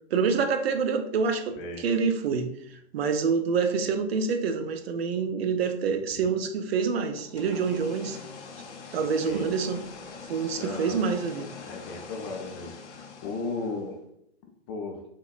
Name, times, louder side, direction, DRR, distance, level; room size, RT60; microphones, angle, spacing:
voice 1, 0.1-2.5 2.9-8.2 8.9-9.8 10.3-11.5, right 5 dB, 60° right, 8 dB, 0.5 m, -27 dB
voice 2, 1.5-1.8 9.2-9.5 10.6-11.0 11.6-14.0 14.7-15.0, left 3 dB, 25° left, 2 dB, 0.4 m, -36 dB
sound 1, 7.2-13.9, left 4 dB, 85° left, 0.6 m, -44 dB
3.5 x 2.1 x 2.3 m, 0.73 s
figure-of-eight pair, 110°, 34 cm